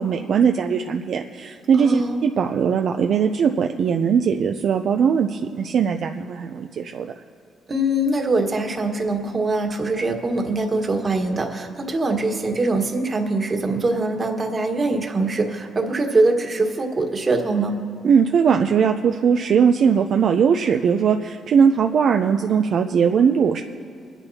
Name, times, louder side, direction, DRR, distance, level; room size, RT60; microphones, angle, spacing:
voice 1, 0.0-7.1 18.0-23.6, right 7 dB, 60° right, 4 dB, 0.5 m, -19 dB
voice 2, 1.7-2.2 7.7-17.8, right 2 dB, 35° right, 2 dB, 1.5 m, -23 dB
24.5 x 10.0 x 2.8 m, 2.2 s
cardioid pair, 90°, 0 cm